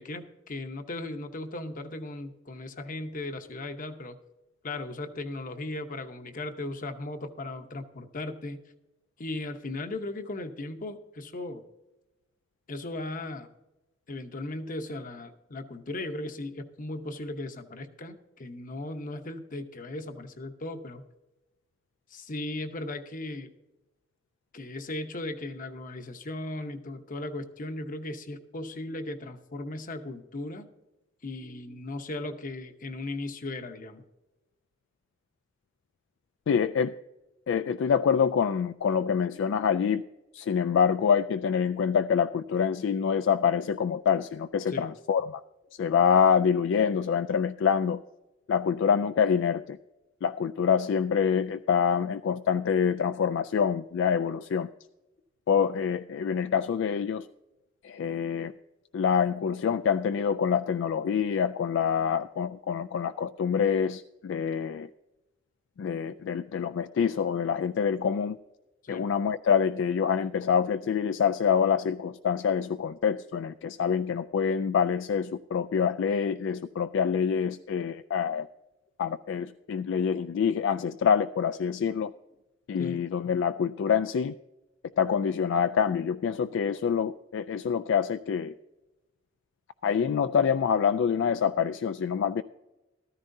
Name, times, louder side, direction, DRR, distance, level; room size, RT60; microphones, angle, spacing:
voice 1, 0.0-4.2 4.6-8.6 9.2-11.6 12.7-13.5 14.1-21.0 22.1-23.5 24.5-30.7 31.2-34.0 44.7-44.9 68.8-69.1 75.7-75.8 82.8-83.0, left 2 dB, 45° left, 8 dB, 0.9 m, -37 dB
voice 2, 36.5-36.9 37.5-40.0 40.3-45.4 45.8-48.0 48.5-49.8 50.2-54.7 55.5-57.3 57.8-58.5 58.9-64.9 65.8-68.4 68.9-78.5 79.0-82.1 82.7-84.3 85.0-88.5 89.8-92.4, left 7 dB, 65° left, 10 dB, 0.3 m, -26 dB
14.0 x 13.5 x 2.7 m, 1.0 s
head